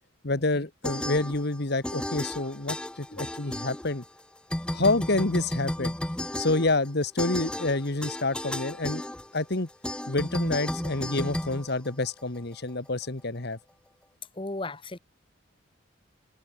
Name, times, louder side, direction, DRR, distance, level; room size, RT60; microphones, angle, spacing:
voice 1, 0.2-4.0 4.7-5.9 6.4-9.0 9.3-9.7 10.1-13.6, left 2 dB, 55° left, 1.6 m, -28 dB
sound 1, 0.8-1.6 1.8-4.2 4.5-12.4, left 1 dB, 5° left, 0.4 m, -33 dB
voice 2, 14.3-15.0, left 2 dB, 25° left, 1.3 m, -36 dB
head